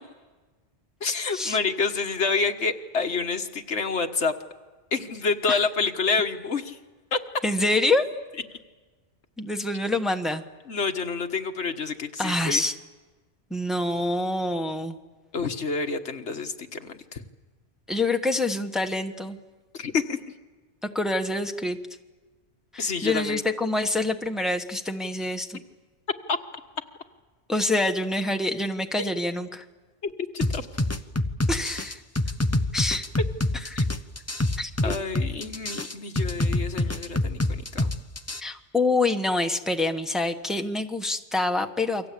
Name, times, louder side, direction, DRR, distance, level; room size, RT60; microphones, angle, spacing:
voice 1, 1.0-4.3 4.9-6.8 7.1-7.2 10.7-12.6 15.3-17.2 19.7-20.2 22.8-23.4 26.3-26.4 29.0-29.1 30.0-30.7 33.8-33.9 34.8-37.9, left 4 dB, 85° left, 5 dB, 1.8 m, -28 dB
voice 2, 7.4-8.0 9.4-10.4 12.2-12.7 13.5-14.9 17.9-19.4 20.8-21.8 22.7-25.6 27.5-29.6 31.5-32.0 32.7-33.1 33.5-33.9 34.6-34.9 38.4-42.1, left 2 dB, ahead, 4 dB, 1.3 m, -26 dB
sound 1, 30.4-38.4, left 1 dB, 15° left, 0.8 m, -26 dB
29.0 x 24.5 x 8.5 m, 1.3 s
omnidirectional pair, 1.1 m